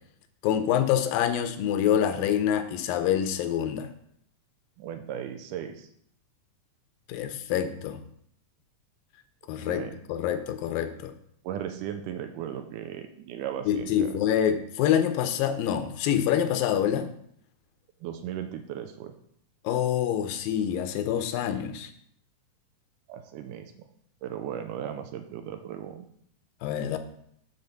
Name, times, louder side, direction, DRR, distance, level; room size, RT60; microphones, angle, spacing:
voice 1, 0.4-3.9 7.1-8.0 9.5-9.8 10.1-11.1 13.7-17.1 19.6-21.9 26.6-27.0, left 9 dB, 90° left, 9 dB, 2.5 m, -26 dB
voice 2, 4.8-5.9 9.7-10.0 11.4-14.2 18.0-19.1 23.1-23.7 24.2-26.1, right 10 dB, 80° right, 7 dB, 2.0 m, -36 dB
7.0 x 4.2 x 6.6 m, 0.69 s
omnidirectional pair, 3.9 m